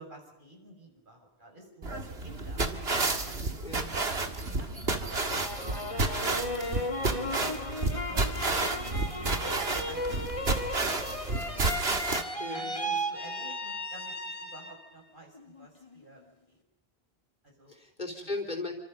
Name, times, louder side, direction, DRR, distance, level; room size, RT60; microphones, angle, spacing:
voice 1, 0.0-2.7 3.3-3.6 3.9-5.4 5.7-7.4 8.1-9.5 9.9-10.9 12.3-16.6 17.4-17.7 18.2-18.3, right 1 dB, 55° right, 2 dB, 6.8 m, -51 dB
sound 1, 1.8-12.2, right 3 dB, 80° right, 2.3 m, -31 dB
sound 2, 5.1-14.9 15.4-16.0, equal, 30° left, 2.3 m, -36 dB
voice 2, 12.4-13.0 17.7-18.7, left 2 dB, 50° left, 1 dB, 3.8 m, -37 dB
29.0 x 26.0 x 5.5 m, 0.92 s
omnidirectional pair, 1.0 m